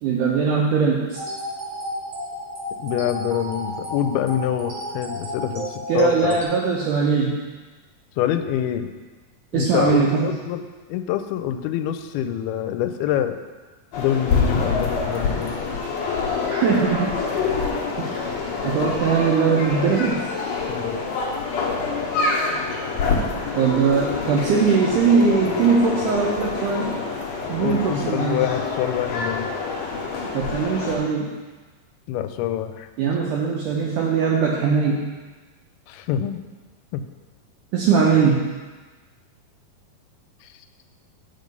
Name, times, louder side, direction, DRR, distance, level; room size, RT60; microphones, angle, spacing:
voice 1, 0.0-1.2 5.9-7.4 9.5-10.3 16.5-17.1 18.0-18.2 18.6-20.3 23.6-27.0 27.5-28.4 30.3-31.4 33.0-35.0 37.7-38.5, right 5 dB, 80° right, -2 dB, 1.9 m, -20 dB
sound 1, 1.1-6.4, equal, 55° right, 2.2 m, -33 dB
voice 2, 2.8-6.4 8.2-8.9 9.5-13.4 14.0-15.6 20.7-21.0 27.6-29.5 32.1-32.9 35.9-36.4 36.9-37.0 40.4-40.7, left 10 dB, 90° left, 10 dB, 2.5 m, -26 dB
sound 2, 13.9-31.0, left 4 dB, 60° left, 1.8 m, -26 dB
7.5 x 5.5 x 5.3 m, 1.3 s
omnidirectional pair, 4.3 m